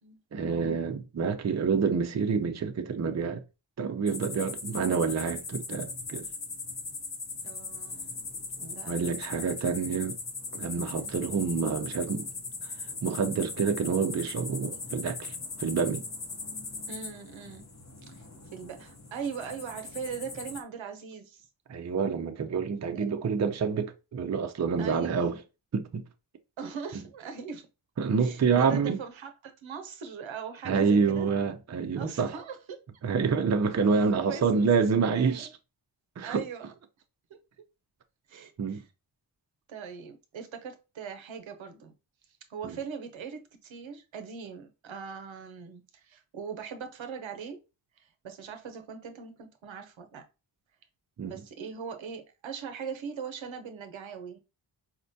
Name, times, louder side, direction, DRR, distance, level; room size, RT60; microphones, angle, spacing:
voice 1, 0.3-3.4 3.8-6.3 8.9-10.2 10.5-12.3 13.0-16.0 21.7-25.4 25.7-26.0 28.0-29.0 30.7-32.3 33.0-35.5 36.2-36.4 38.6-38.8 51.2-51.4, right 5 dB, 35° right, 0.5 m, -27 dB
sound 1, 4.1-20.6, left 4 dB, 35° left, 0.8 m, -39 dB
voice 2, 7.4-8.3 8.6-9.5 10.9-11.2 16.9-17.7 18.1-18.2 18.5-21.4 23.0-23.1 24.8-25.4 26.6-27.7 28.2-31.4 32.0-32.8 34.3-34.7 35.1-35.5 36.2-36.7 37.3-37.4 38.3-38.8 39.7-41.9 42.5-47.6 48.0-50.2 51.2-54.4, right 6 dB, 70° right, 0.8 m, -40 dB
4.3 x 2.1 x 2.7 m
cardioid pair, 40°, 48 cm